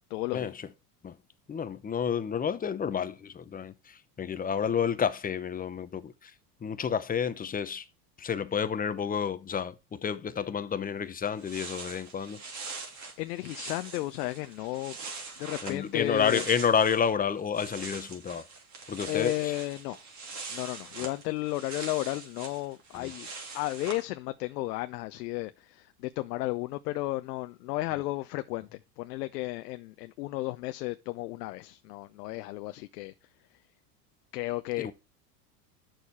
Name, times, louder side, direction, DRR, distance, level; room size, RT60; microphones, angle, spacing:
voice 1, 0.1-0.5 12.8-12.9 13.2-14.9 15.4-16.4 19.1-20.0 20.5-23.3 23.5-33.1 34.3-34.9, left 18 dB, 75° left, 0.7 m, -33 dB
voice 2, 1.5-6.3 6.6-7.8 8.2-12.4 15.6-18.5 18.9-19.5 22.9-23.1 34.8-34.9, left 7 dB, 20° left, 0.8 m, -30 dB
sound 1, 11.0-11.1 11.2-17.1 17.4-24.0, right 4 dB, 35° right, 3.1 m, -43 dB
9.1 x 6.7 x 4.3 m
supercardioid pair, 110°, 49 cm